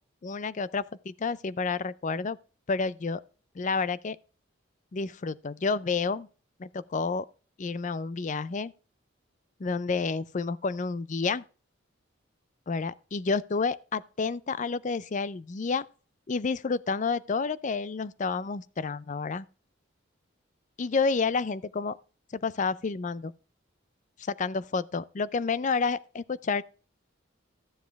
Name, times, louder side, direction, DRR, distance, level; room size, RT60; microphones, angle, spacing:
voice 1, 0.2-2.4 2.7-3.2 3.5-4.2 4.9-6.3 6.6-7.3 7.6-8.7 9.6-11.4 12.7-15.8 16.3-19.5 20.8-22.0 22.3-23.3 24.2-26.6, left 4 dB, 40° left, 0.5 m, -30 dB
13.5 x 7.3 x 3.4 m
head